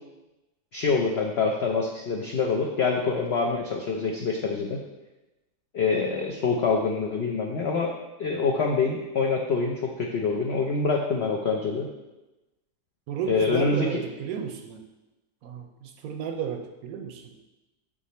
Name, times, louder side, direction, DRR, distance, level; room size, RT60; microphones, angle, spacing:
voice 1, 0.7-4.8 5.7-7.9 8.2-11.9 13.3-14.0, left 4 dB, 85° left, 1 dB, 0.5 m, -25 dB
voice 2, 13.1-14.9 15.4-17.4, right 7 dB, 70° right, 5 dB, 0.9 m, -33 dB
6.8 x 3.7 x 4.1 m, 1.0 s
omnidirectional pair, 1.8 m